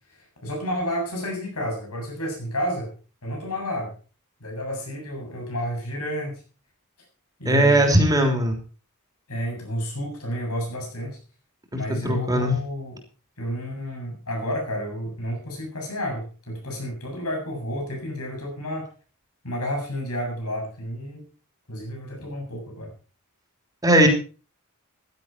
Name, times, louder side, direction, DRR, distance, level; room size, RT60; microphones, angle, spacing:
voice 1, 0.1-2.9 3.2-3.9 4.4-6.4 7.4-8.1 9.3-11.2 11.7-13.0 13.4-18.9 19.4-21.3 21.7-22.9, equal, 85° left, 1 dB, 7.5 m, -31 dB
voice 2, 7.5-8.5 11.7-12.5 23.8-24.1, right 1 dB, 15° right, 4 dB, 3.4 m, -19 dB
15.0 x 12.0 x 4.5 m, 0.36 s
head